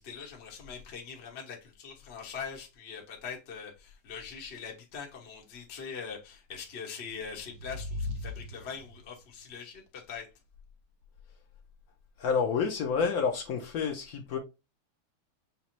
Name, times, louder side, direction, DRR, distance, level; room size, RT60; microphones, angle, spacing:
voice 1, 0.0-10.3, left 6 dB, 40° left, 0.9 m, -42 dB
sound 1, 6.9-9.2, left 2 dB, 80° right, 0.8 m, -39 dB
voice 2, 12.2-14.4, left 5 dB, 90° left, 0.8 m, -29 dB
5.5 x 2.0 x 4.3 m
omnidirectional pair, 2.4 m